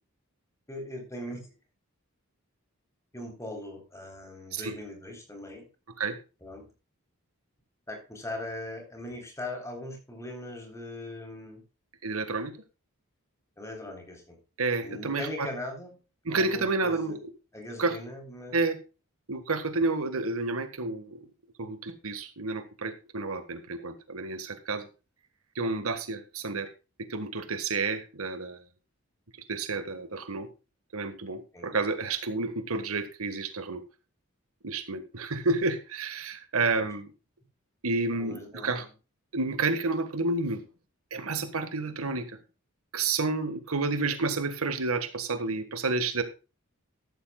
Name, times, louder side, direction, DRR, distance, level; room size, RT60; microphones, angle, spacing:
voice 1, 0.7-1.5 3.1-5.7 6.4-6.7 7.9-11.6 13.6-14.4 14.8-16.0 16.3-17.2 17.5-18.6 31.5-31.8 36.8-36.9 38.1-38.9, left 1 dB, 15° left, 3 dB, 3.8 m, -40 dB
voice 2, 12.0-12.5 14.6-15.5 16.2-17.3 17.8-18.0 18.5-18.8 19.3-21.2 21.6-24.9 25.5-26.7 27.1-28.6 29.5-30.5 30.9-33.8 34.6-37.1 37.8-38.8 39.3-40.6 41.1-42.4 42.9-46.2, right 3 dB, 80° right, 10 dB, 1.6 m, -30 dB
13.5 x 12.5 x 2.3 m, 0.32 s
head